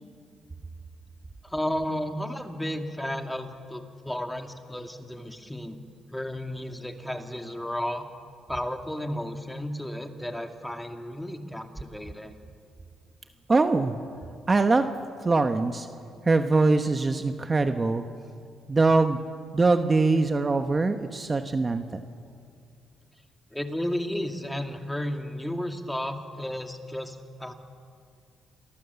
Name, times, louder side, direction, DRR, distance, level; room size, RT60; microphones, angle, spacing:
voice 1, 1.4-5.8 6.1-8.0 8.5-12.4 23.5-27.5, left 1 dB, 5° left, 5 dB, 2.4 m, -33 dB
voice 2, 13.5-14.0 14.5-14.9 15.2-15.9 16.2-18.0 18.7-19.2 19.5-22.0, right 3 dB, 25° right, 7 dB, 1.3 m, -22 dB
28.0 x 23.5 x 7.2 m, 2.2 s
cardioid pair, 90°, 0 cm